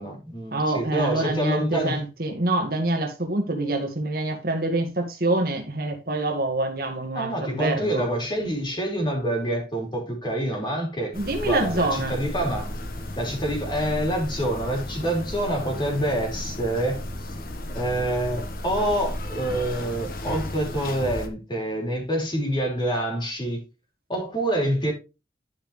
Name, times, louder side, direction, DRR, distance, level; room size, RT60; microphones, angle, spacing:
voice 1, 0.0-2.0 7.1-11.1 11.4-12.7 13.2-17.3 17.7-23.7 24.1-24.9, right 1 dB, 25° left, 3.3 m, -27 dB
voice 2, 0.5-8.1 11.1-12.1, right 2 dB, 55° right, 1.8 m, -26 dB
sound 1, 11.1-21.3, left 1 dB, 55° left, 1.2 m, -34 dB
12.0 x 5.4 x 3.3 m
head